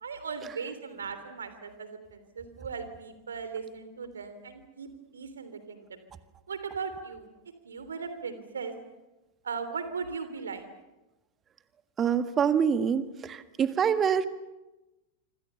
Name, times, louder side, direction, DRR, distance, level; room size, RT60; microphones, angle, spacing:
voice 1, 0.0-6.0 6.5-7.3 7.6-8.7 9.4-10.6, right 5 dB, 70° right, 10 dB, 3.3 m, -38 dB
voice 2, 12.0-14.3, right 7 dB, 25° right, 11 dB, 1.6 m, -25 dB
26.0 x 26.0 x 6.9 m, 1.0 s
figure-of-eight pair, 90°, 0 cm